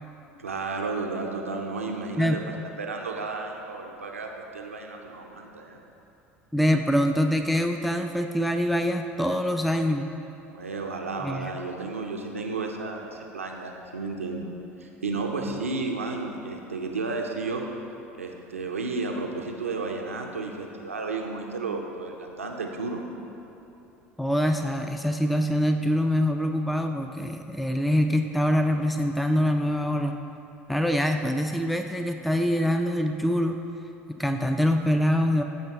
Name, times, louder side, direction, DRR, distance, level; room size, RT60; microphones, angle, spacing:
voice 1, 0.4-2.4 2.8-5.8 10.5-14.4 14.8-17.6 18.1-23.0, right 3 dB, 85° right, 2 dB, 0.6 m, -32 dB
voice 2, 6.5-10.1 11.2-11.6 24.2-30.2 30.7-33.6 34.1-35.4, equal, ahead, 5 dB, 0.4 m, -24 dB
15.5 x 5.6 x 2.9 m, 2.9 s
figure-of-eight pair, 70°, 7 cm